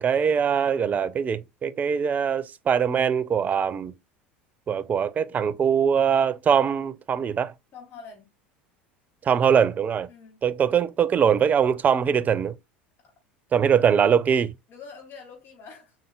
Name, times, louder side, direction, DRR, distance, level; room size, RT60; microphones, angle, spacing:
voice 1, 0.0-3.9 4.7-7.5 9.2-10.1 10.4-12.5 13.5-14.5, right 7 dB, 30° right, 0.4 m, -22 dB
voice 2, 7.7-8.3 10.1-10.4 13.0-13.1 13.7-13.9 14.7-15.9, left 5 dB, 45° left, 3.1 m, -45 dB
5.4 x 3.9 x 2.4 m
hypercardioid pair, 75°, 6 cm